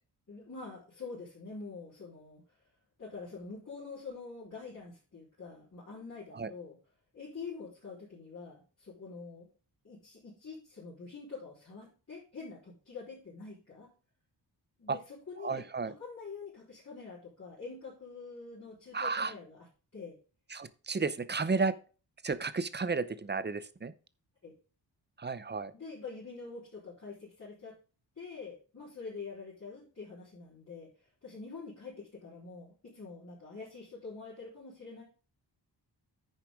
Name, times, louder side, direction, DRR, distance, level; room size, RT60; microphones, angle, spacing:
voice 1, 0.3-2.4 3.0-6.8 7.1-9.5 9.8-13.9 14.8-19.7 19.9-20.2 24.4-24.5 25.7-27.7 28.2-35.0, left 4 dB, 40° left, -8 dB, 4.2 m, -46 dB
voice 2, 15.4-15.9 18.9-19.3 20.5-21.7 22.2-23.9 25.2-25.7, right 4 dB, 25° right, 14 dB, 0.7 m, -32 dB
9.7 x 6.6 x 3.6 m, 0.35 s
wide cardioid pair, 180°, 42 cm